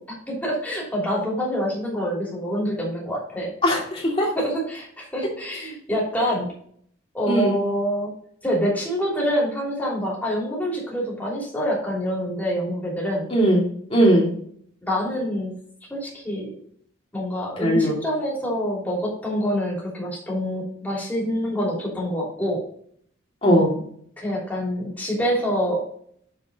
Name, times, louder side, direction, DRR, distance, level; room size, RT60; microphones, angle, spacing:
voice 1, 0.3-3.5 4.3-6.5 7.1-8.1 8.4-13.3 14.8-15.5 15.9-16.5 17.1-22.6 24.2-25.8, equal, 10° left, -4 dB, 3.0 m, -26 dB
voice 2, 3.6-4.3 7.3-7.6 13.3-13.6 13.9-14.3 17.6-18.0 23.4-23.7, equal, 30° left, -3 dB, 2.5 m, -19 dB
7.0 x 6.6 x 4.1 m, 0.62 s
head